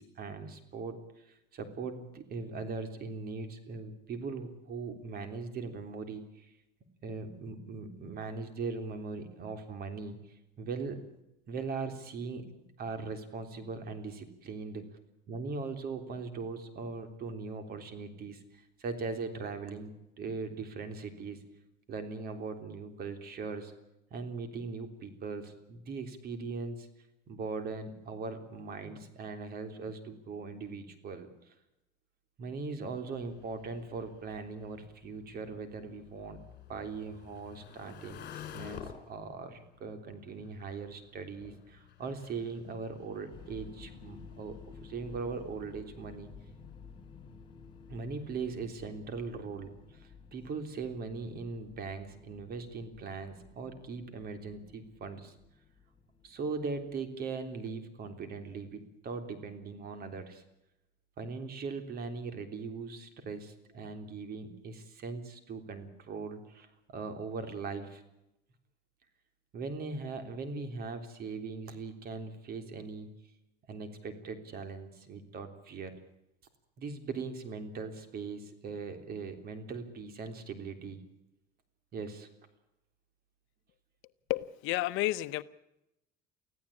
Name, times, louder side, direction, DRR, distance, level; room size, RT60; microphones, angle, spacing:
voice 1, 0.0-6.5 7.0-11.0 11.5-14.9 15.3-21.4 21.9-23.7 24.1-26.9 27.3-31.5 32.4-36.4 36.7-46.3 47.9-55.3 56.2-60.4 61.2-68.0 69.5-73.1 73.7-75.9 76.8-81.0 81.9-82.3, right 4 dB, 45° right, 8 dB, 3.5 m, -40 dB
sound 1, 33.1-48.7, left 8 dB, 50° left, 4.5 m, -53 dB
sound 2, 43.3-57.3, left 5 dB, 25° left, 2.4 m, -53 dB
voice 2, 84.3-85.4, left 17 dB, 70° left, 13 dB, 0.9 m, -31 dB
24.5 x 15.5 x 8.7 m, 0.88 s
cardioid pair, 120°, 21 cm